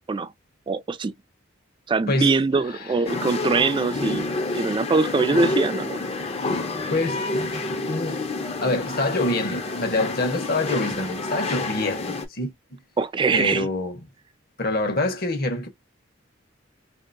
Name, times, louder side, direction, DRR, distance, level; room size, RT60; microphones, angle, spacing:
voice 1, 0.7-1.1 1.9-4.3 4.5-6.0 13.0-13.7, right 4 dB, 25° right, 0.3 m, -22 dB
voice 2, 2.1-3.0 6.9-7.2 7.9-8.2 8.6-12.5 13.3-14.0 14.6-15.7, left 2 dB, 50° left, 1.1 m, -26 dB
sound 1, 3.1-12.3, left 2 dB, 35° left, 0.6 m, -29 dB
2.9 x 2.8 x 2.6 m
head